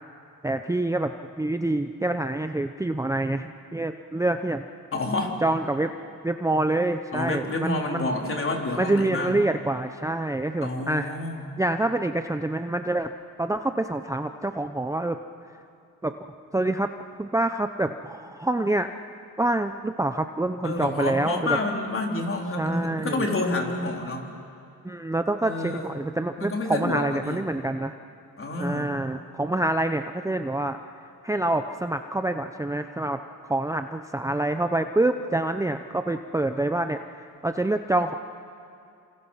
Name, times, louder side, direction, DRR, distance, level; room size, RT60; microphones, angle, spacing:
voice 1, 0.4-4.6 5.4-5.9 6.2-8.1 8.8-11.1 11.6-13.1 13.4-15.2 16.0-16.1 16.5-16.9 17.2-18.9 19.4-21.6 22.6-23.2 24.8-28.0 28.6-30.8 31.2-38.1, right 2 dB, 10° right, 7 dB, 0.7 m, -26 dB
voice 2, 4.9-5.3 7.1-9.4 10.6-11.5 20.6-24.3 25.4-25.9 26.4-27.4 28.4-28.9, left 2 dB, 40° left, 1 dB, 3.8 m, -29 dB
28.0 x 27.0 x 5.7 m, 2.5 s
cardioid pair, 95°, 35 cm